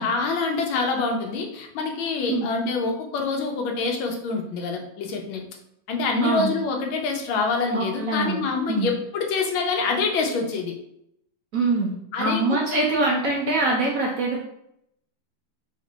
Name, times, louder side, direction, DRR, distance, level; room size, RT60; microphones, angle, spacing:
voice 1, 0.0-5.4 5.9-10.7 12.1-12.4 12.7-12.8, left 4 dB, 90° left, 2 dB, 1.6 m, -26 dB
voice 2, 6.2-6.5 7.7-8.9 11.5-11.9 12.2-14.4, right 2 dB, 65° right, -3 dB, 0.9 m, -24 dB
3.6 x 3.2 x 3.9 m, 0.77 s
omnidirectional pair, 2.1 m